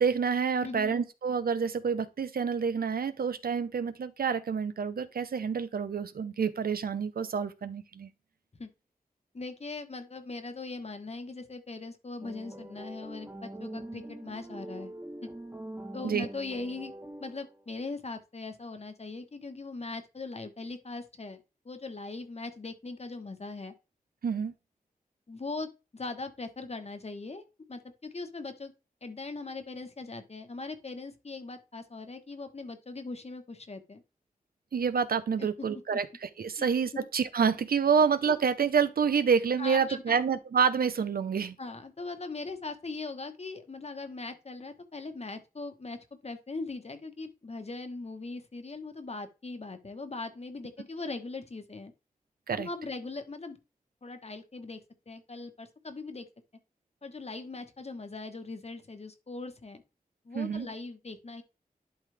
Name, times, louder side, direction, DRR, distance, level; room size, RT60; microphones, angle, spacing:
voice 1, 0.0-8.1 16.0-16.3 24.2-24.5 34.7-41.6 52.5-52.7 60.3-60.7, right 6 dB, 85° right, 0.7 m, -28 dB
voice 2, 0.6-0.9 8.6-8.7 9.3-14.9 15.9-16.9 17.2-21.4 21.6-23.7 25.3-28.7 29.0-34.0 35.4-35.5 36.6-36.7 36.9-37.0 39.6-40.2 41.6-51.9 52.6-53.6 54.0-54.8 55.1-56.3 57.0-59.8 60.2-61.4, left 3 dB, 45° left, 1.2 m, -40 dB
sound 1, 12.2-17.6, right 1 dB, 15° right, 1.2 m, -43 dB
11.5 x 3.9 x 3.4 m
wide cardioid pair, 65°, 15 cm